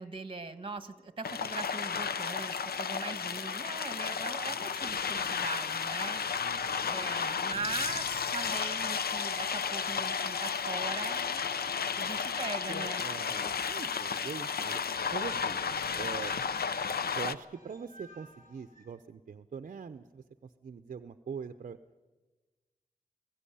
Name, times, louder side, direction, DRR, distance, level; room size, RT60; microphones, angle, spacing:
voice 1, 0.0-6.5 6.9-13.0, right 3 dB, 35° right, 11 dB, 1.4 m, -41 dB
sound 1, 1.2-17.3, left 6 dB, 80° left, 0.7 m, -33 dB
voice 2, 6.4-6.9 13.0-14.8 15.1-15.6 16.0-16.3 17.1-21.8, right 6 dB, 55° right, 10 dB, 0.6 m, -43 dB
sound 2, 8.7-8.8 9.1-18.9, left 1 dB, 50° left, 6.1 m, -59 dB
21.0 x 15.5 x 10.0 m, 1.2 s
wide cardioid pair, 145°, 16 cm